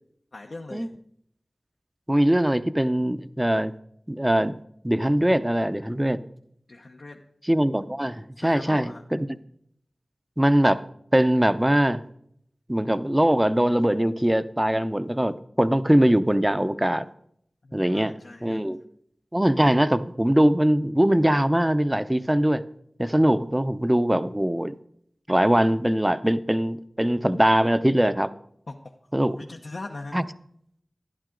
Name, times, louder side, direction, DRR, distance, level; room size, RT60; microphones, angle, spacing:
voice 1, 0.3-0.9 6.7-7.2 8.4-9.0 17.6-18.6 28.7-28.8 29.3-30.2, left 2 dB, 75° left, 1 dB, 0.8 m, -39 dB
voice 2, 2.1-3.7 4.1-4.6 4.8-6.2 7.4-9.3 10.4-10.8 11.1-12.0 12.7-17.1 17.7-18.1 18.4-18.8 19.3-22.6 23.0-24.7 25.3-28.3 29.1-29.4 30.1-30.2, right 1 dB, 15° right, 12 dB, 0.6 m, -22 dB
12.0 x 11.0 x 3.8 m, 0.69 s
wide cardioid pair, 60°, 0 cm